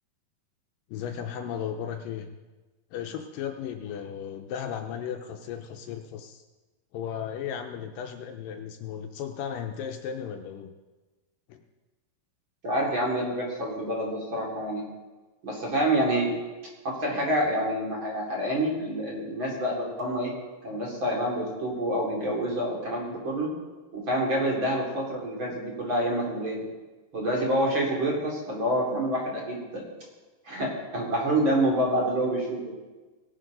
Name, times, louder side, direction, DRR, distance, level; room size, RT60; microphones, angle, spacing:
voice 1, 0.9-2.3 2.9-6.4 6.9-10.7 11.5-11.6, left 8 dB, 75° left, 5 dB, 2.3 m, -35 dB
voice 2, 12.6-14.8 15.4-16.3 16.8-20.3 20.6-23.5 23.9-26.6 27.1-29.8 30.4-32.7, right 1 dB, 35° right, -3 dB, 3.3 m, -27 dB
18.0 x 11.5 x 3.9 m, 1.2 s
omnidirectional pair, 4.2 m